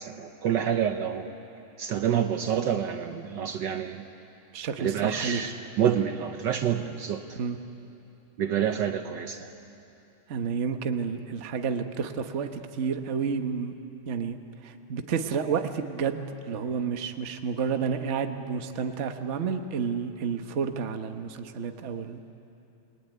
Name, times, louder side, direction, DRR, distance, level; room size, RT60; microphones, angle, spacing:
voice 1, 0.0-1.3 1.8-4.0 4.8-7.2 8.4-9.5, right 9 dB, 65° right, 7 dB, 1.4 m, -28 dB
voice 2, 4.5-5.4 7.4-7.6 10.3-13.7 14.1-14.4 14.6-22.2, right 6 dB, 40° right, 7 dB, 1.2 m, -30 dB
28.5 x 21.0 x 9.4 m, 2.9 s
omnidirectional pair, 2.3 m